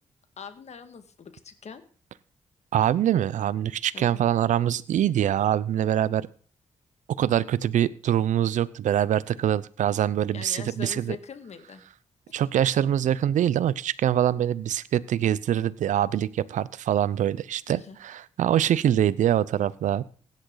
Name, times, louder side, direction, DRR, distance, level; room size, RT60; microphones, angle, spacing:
voice 1, 0.4-1.8 3.9-4.2 10.3-11.8 17.7-18.0, left 6 dB, 60° left, 9 dB, 1.9 m, -42 dB
voice 2, 2.7-6.3 7.1-11.2 12.3-20.0, right 10 dB, 80° right, 19 dB, 0.6 m, -24 dB
16.0 x 10.5 x 3.9 m, 0.42 s
cardioid pair, 55°, 13 cm